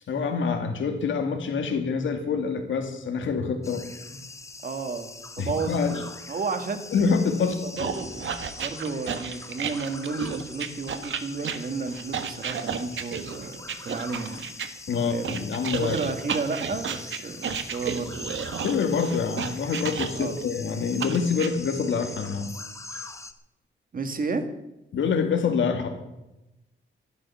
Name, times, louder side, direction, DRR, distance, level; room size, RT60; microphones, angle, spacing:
voice 1, 0.1-3.8 4.1-4.2 5.4-6.0 6.9-7.5 7.8-7.9 14.9-16.0 18.6-22.5 22.9-23.0 24.9-25.9, left 5 dB, 70° left, 5 dB, 2.2 m, -26 dB
sound 1, 3.6-23.3, left 2 dB, 15° left, 1.0 m, -42 dB
voice 2, 4.6-6.0 6.3-6.8 7.4-8.1 8.6-14.5 14.9-15.5 15.8-18.4 20.1-20.4 23.9-24.5, right 4 dB, 45° right, 8 dB, 1.9 m, -32 dB
sound 2, 7.8-14.7 15.2-20.4 21.0-21.5, right 7 dB, 70° right, 1.5 m, -32 dB
13.5 x 11.5 x 7.1 m, 0.94 s
wide cardioid pair, 140°, 20 cm